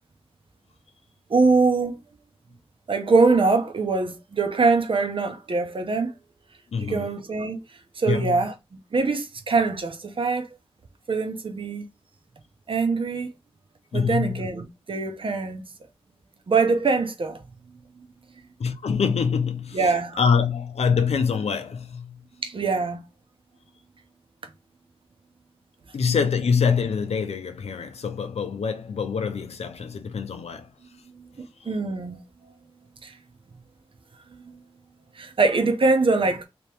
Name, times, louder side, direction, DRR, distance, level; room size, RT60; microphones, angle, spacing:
voice 1, 1.3-2.0 2.9-6.1 6.8-7.6 8.0-8.5 8.9-10.5 11.1-11.9 12.7-13.3 13.9-15.6 16.5-17.4 19.7-20.2 22.4-23.0 31.1-31.3 31.7-32.2 33.0-33.1 34.3-34.6 35.2-36.5, right 4 dB, 55° right, 0.8 m, -23 dB
voice 2, 6.7-7.2 8.0-8.5 13.9-14.5 18.6-22.2 25.9-30.7 31.6-31.7, left 6 dB, 85° left, 0.6 m, -25 dB
3.0 x 2.9 x 3.4 m
wide cardioid pair, 75°, 10 cm